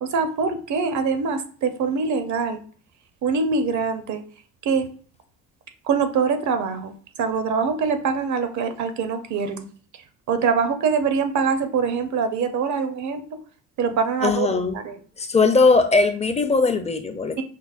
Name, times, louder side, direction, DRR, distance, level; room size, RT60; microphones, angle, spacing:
voice 1, 0.0-2.6 3.2-4.2 4.6-4.9 5.8-9.7 10.3-13.2 13.8-15.0 17.4-17.5, right 5 dB, 55° right, 8 dB, 0.7 m, -24 dB
voice 2, 14.2-14.8 15.2-17.4, left 4 dB, 20° left, 7 dB, 0.5 m, -19 dB
5.6 x 2.0 x 2.4 m, 0.43 s
supercardioid pair, 85°, 34 cm